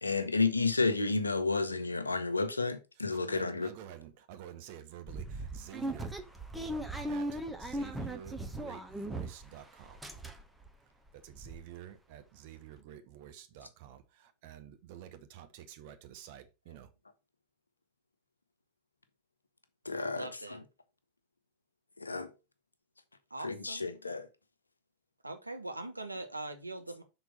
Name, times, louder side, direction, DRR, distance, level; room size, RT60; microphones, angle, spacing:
voice 1, 0.0-3.7 19.8-20.6 22.0-22.3 23.4-24.3, left 3 dB, 80° left, 0.8 m, -31 dB
voice 2, 3.1-6.1 7.1-10.0 11.1-16.9, right 10 dB, 50° right, 1.1 m, -50 dB
sound 1, 5.1-9.5 9.8-10.7 11.1-11.2 11.3-11.6, right 1 dB, 5° right, 1.0 m, -38 dB
voice 3, 20.1-20.6 23.3-23.8 25.2-27.0, right 2 dB, 85° right, 1.1 m, -42 dB
6.1 x 4.0 x 5.1 m
figure-of-eight pair, 90°, 0 cm